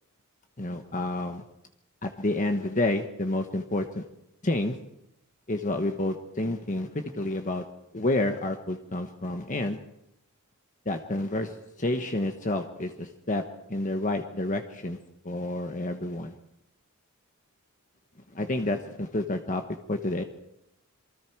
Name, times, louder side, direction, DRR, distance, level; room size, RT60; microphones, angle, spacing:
voice 1, 0.6-1.4 2.0-4.0 4.4-4.8 5.5-7.6 7.9-9.8 10.8-13.4 13.7-15.0 15.2-16.3 18.3-19.6 19.9-20.2, left 2 dB, 35° left, 5 dB, 1.3 m, -29 dB
27.5 x 24.0 x 4.7 m, 0.83 s
head